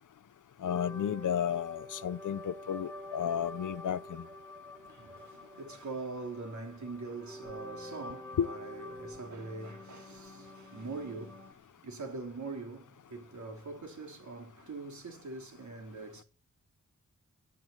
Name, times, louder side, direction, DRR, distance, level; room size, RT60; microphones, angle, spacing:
voice 1, 0.6-4.2 8.4-8.5, left 9 dB, 85° left, 0.8 m, -32 dB
sound 1, 0.7-11.5, left 1 dB, 5° left, 5.2 m, -47 dB
voice 2, 4.8-16.2, right 3 dB, 70° right, 3.7 m, -43 dB
17.0 x 7.6 x 9.3 m
wide cardioid pair, 140°, 30 cm